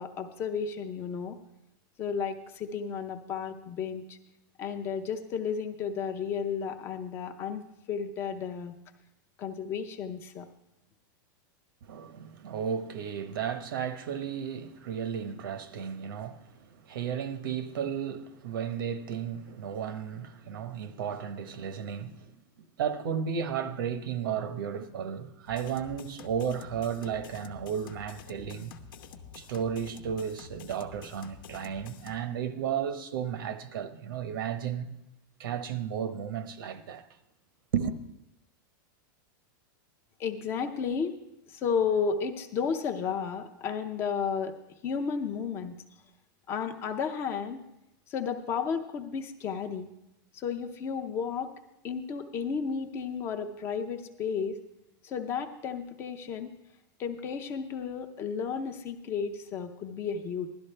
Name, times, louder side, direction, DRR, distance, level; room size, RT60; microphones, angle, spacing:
voice 1, 0.0-1.4 2.0-4.2 4.6-7.6 7.9-8.7 9.4-10.5 40.2-41.1 41.5-44.5 44.8-45.8 46.5-47.6 48.1-49.9 50.3-51.5 51.8-54.6 55.0-56.5 57.0-60.5, left 6 dB, 20° left, 0.6 m, -33 dB
voice 2, 11.9-16.4 16.9-22.3 22.8-28.7 29.3-34.9 35.4-37.0 37.7-38.0, right 8 dB, 80° right, 1.0 m, -33 dB
sound 1, 25.5-32.2, left 6 dB, 80° left, 1.0 m, -48 dB
16.0 x 12.0 x 3.3 m
supercardioid pair, 175°, 11 cm